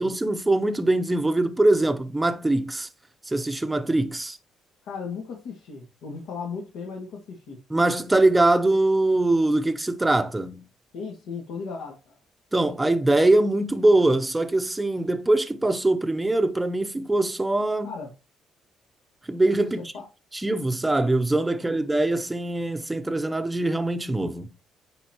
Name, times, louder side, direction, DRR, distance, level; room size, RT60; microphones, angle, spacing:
voice 1, 0.0-2.9 3.3-4.4 7.7-10.7 12.5-17.9 19.3-19.8 20.3-24.5, right 2 dB, 10° right, 0.7 m, -22 dB
voice 2, 4.8-7.6 10.9-12.2 17.8-18.1 19.8-20.1 21.7-21.9, left 5 dB, 85° left, 1.9 m, -36 dB
9.9 x 4.0 x 2.9 m
cardioid pair, 135°, 0 cm